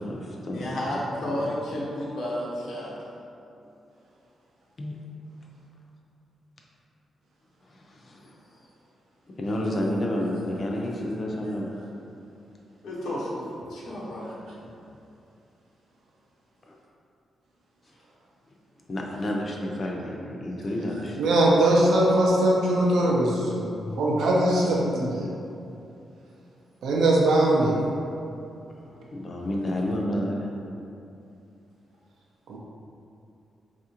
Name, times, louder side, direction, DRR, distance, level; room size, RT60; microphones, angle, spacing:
voice 1, 0.0-0.8 4.8-4.9 7.7-8.4 9.4-11.8 18.9-21.2 28.7-30.5, left 1 dB, 30° left, -1 dB, 0.4 m, -30 dB
voice 2, 0.5-3.0 12.8-14.3, left 1 dB, 80° left, -6 dB, 0.9 m, -32 dB
voice 3, 21.2-25.3 26.8-27.8 32.5-32.6, right 1 dB, 85° right, -3 dB, 0.4 m, -21 dB
4.2 x 2.4 x 2.8 m, 2.7 s
wide cardioid pair, 165°, 0 cm